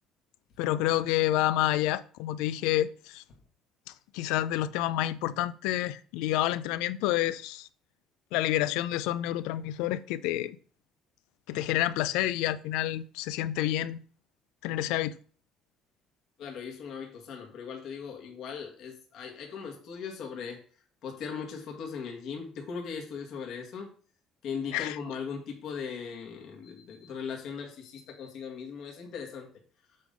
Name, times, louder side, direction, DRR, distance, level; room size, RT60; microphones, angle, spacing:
voice 1, 0.6-3.2 4.1-7.7 8.3-10.6 11.5-14.0 14.6-15.2 24.7-25.0, left 14 dB, 85° left, 0.4 m, -29 dB
voice 2, 16.4-20.6 21.0-23.9 24.4-29.5, left 6 dB, 65° left, 1.8 m, -39 dB
7.6 x 3.7 x 5.2 m
supercardioid pair, 85°, 0 cm